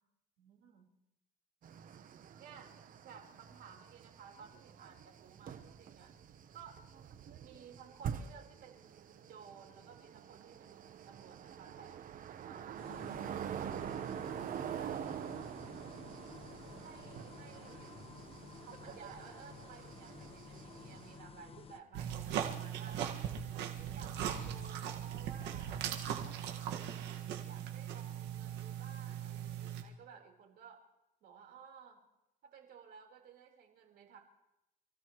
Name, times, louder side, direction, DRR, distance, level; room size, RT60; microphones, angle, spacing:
voice 1, 0.4-0.9 2.4-2.8 3.0-6.1 6.5-6.9 7.4-12.0 12.4-13.1 14.1-15.3 16.8-18.1 18.6-23.0 23.5-25.9 26.6-27.1 27.4-30.8 31.2-32.0 32.4-34.2, right 6 dB, 70° right, 1 dB, 4.2 m, -56 dB
sound 1, 1.6-21.2, right 9 dB, 55° right, 1.0 m, -46 dB
sound 2, 12.8-21.8, left 6 dB, 35° left, 1.2 m, -53 dB
sound 3, 21.9-29.8, right 9 dB, 85° right, 1.8 m, -39 dB
27.5 x 15.5 x 3.1 m, 0.89 s
cardioid pair, 110°, 17 cm